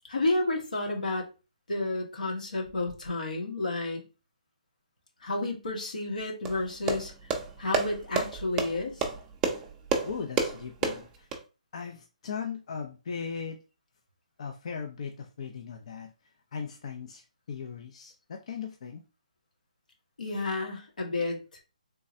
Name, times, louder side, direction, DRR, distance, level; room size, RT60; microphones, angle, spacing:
voice 1, 0.1-1.3 1.7-4.0 5.2-7.1 7.6-9.1 20.2-21.6, left 2 dB, 85° left, 0 dB, 1.7 m, -31 dB
sound 1, 6.4-11.4, right 4 dB, 15° right, 0.5 m, -31 dB
voice 2, 10.0-11.3 11.7-13.6 14.4-16.1 16.5-19.0, left 6 dB, 50° left, 3 dB, 0.5 m, -38 dB
3.4 x 3.1 x 2.6 m, 0.31 s
hypercardioid pair, 155°, 4 cm